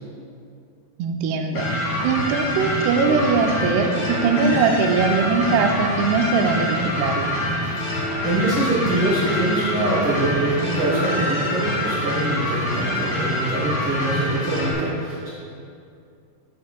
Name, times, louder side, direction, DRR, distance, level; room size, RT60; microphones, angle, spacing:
voice 1, 1.0-7.3, right 4 dB, 90° right, 4 dB, 2.7 m, -21 dB
sound 1, 1.5-14.7, left 1 dB, 80° left, 3.6 m, -26 dB
sound 2, 1.9-3.2 3.9-5.1 6.6-8.4 9.0-12.5, left 1 dB, 35° right, 1.7 m, -37 dB
voice 2, 7.7-15.3, right 1 dB, 55° right, -10 dB, 1.4 m, -24 dB
10.5 x 7.2 x 2.3 m, 2.5 s
omnidirectional pair, 4.6 m